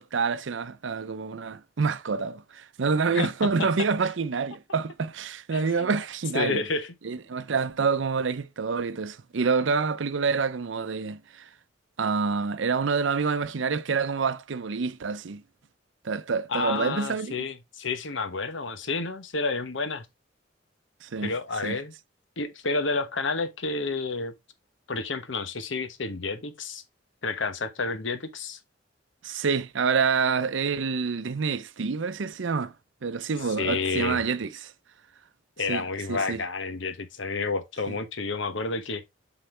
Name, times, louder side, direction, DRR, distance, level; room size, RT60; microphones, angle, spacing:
voice 1, 0.0-6.6 7.0-11.5 12.0-15.4 16.0-17.4 21.0-21.3 21.6-21.8 29.2-32.7 33.0-34.7 35.7-36.4 37.9-38.0, right 5 dB, 80° right, 0.6 m, -27 dB
voice 2, 5.5-6.0 6.3-6.9 16.5-20.1 21.2-21.9 22.4-24.3 24.9-26.8 27.2-28.6 33.6-34.2 35.6-39.0, left 3 dB, 80° left, 1.0 m, -30 dB
7.7 x 4.1 x 3.2 m
head